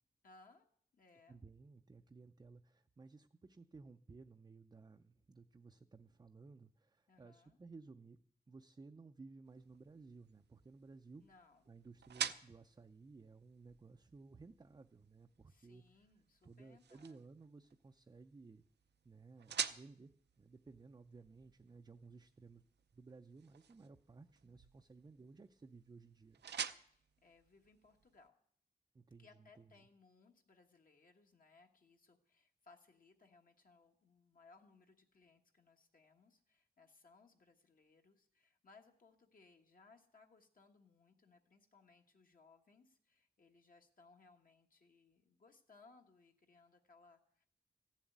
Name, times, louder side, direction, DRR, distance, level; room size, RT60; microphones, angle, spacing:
voice 1, 0.2-0.7 0.9-1.4 7.1-7.6 11.2-11.6 15.5-17.2 26.9-28.4 29.2-47.5, left 3 dB, 55° left, 3 dB, 1.3 m, -66 dB
voice 2, 1.3-8.2 8.5-11.2 11.7-15.8 16.4-18.6 19.0-20.1 20.4-22.6 22.9-26.4 28.9-29.7, right 4 dB, 25° right, 6 dB, 0.5 m, -58 dB
sound 1, 9.4-28.3, right 8 dB, 85° right, 0.6 m, -50 dB
14.5 x 7.3 x 9.3 m, 0.63 s
wide cardioid pair, 150°, 17 cm